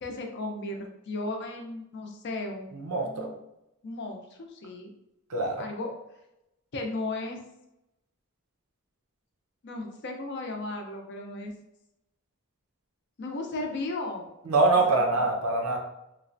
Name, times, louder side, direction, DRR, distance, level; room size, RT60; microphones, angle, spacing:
voice 1, 0.0-2.7 3.0-3.3 3.8-4.9 5.6-5.9 6.7-7.4 9.6-11.5 13.2-14.3 14.9-15.1, left 2 dB, 50° left, 3 dB, 0.4 m, -35 dB
voice 2, 2.7-3.3 5.3-5.6 14.5-15.8, right 3 dB, 85° right, 1 dB, 0.6 m, -24 dB
3.1 x 2.1 x 2.5 m, 0.86 s
head